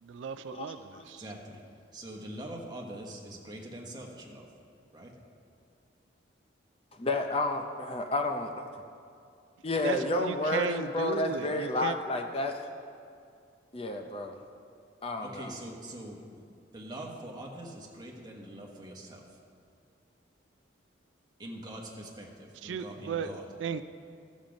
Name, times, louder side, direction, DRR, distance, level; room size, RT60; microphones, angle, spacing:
voice 1, 0.0-1.2 9.8-12.0 22.6-23.3 23.6-23.8, right 6 dB, 75° right, 12 dB, 0.3 m, -35 dB
voice 2, 1.2-1.6 1.9-4.5 4.9-5.1 15.2-19.4 21.4-23.4, right 1 dB, 20° right, -1 dB, 1.2 m, -43 dB
voice 3, 6.9-8.7 9.6-12.6 13.7-14.4 15.0-15.5, left 2 dB, 30° left, 5 dB, 0.5 m, -31 dB
12.5 x 7.3 x 5.1 m, 2.4 s
head